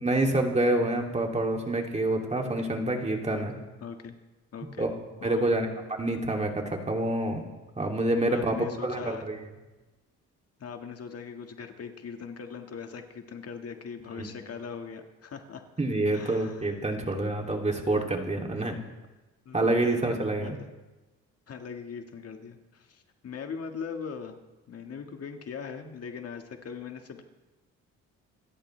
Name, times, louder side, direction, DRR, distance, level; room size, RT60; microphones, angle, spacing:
voice 1, 0.0-3.5 4.8-4.9 5.2-7.4 7.8-9.4 14.2-14.3 15.8-18.8 19.5-20.6, right 2 dB, 20° right, 1 dB, 2.8 m, -27 dB
voice 2, 3.8-4.1 4.5-4.9 5.2-5.6 8.3-9.3 10.6-15.6 16.1-16.7 19.5-20.5 21.5-24.4 24.7-27.2, left 6 dB, 55° left, 4 dB, 1.7 m, -40 dB
27.5 x 14.0 x 3.3 m, 1.1 s
cardioid pair, 90°, 30 cm